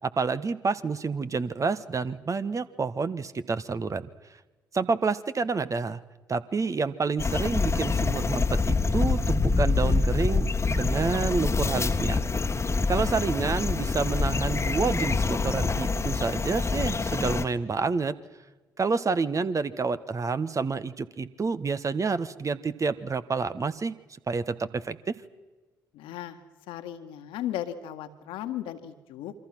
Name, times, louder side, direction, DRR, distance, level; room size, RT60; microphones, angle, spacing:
voice 1, 0.0-4.1 4.7-6.0 6.3-12.3 12.9-18.1 18.8-24.0 24.3-25.1, right 4 dB, 35° right, 13 dB, 1.3 m, -28 dB
sound 1, 7.2-17.4, left 4 dB, 30° left, 1.6 m, -26 dB
voice 2, 25.9-26.4 26.7-29.3, left 11 dB, 65° left, 8 dB, 1.9 m, -36 dB
27.0 x 25.0 x 6.1 m, 1.2 s
figure-of-eight pair, 45°, 10 cm